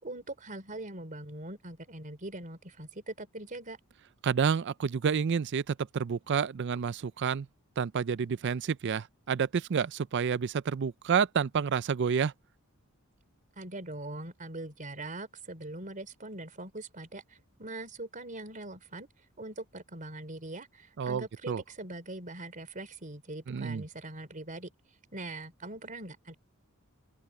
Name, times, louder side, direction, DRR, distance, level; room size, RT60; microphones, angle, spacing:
voice 1, 0.0-3.8 13.6-19.1 19.4-24.7 25.1-26.3, right 2 dB, 40° right, 3.8 m, -42 dB
voice 2, 4.2-7.5 7.8-12.3 21.0-21.6 23.5-23.8, right 6 dB, 55° right, 0.4 m, -29 dB
open air
head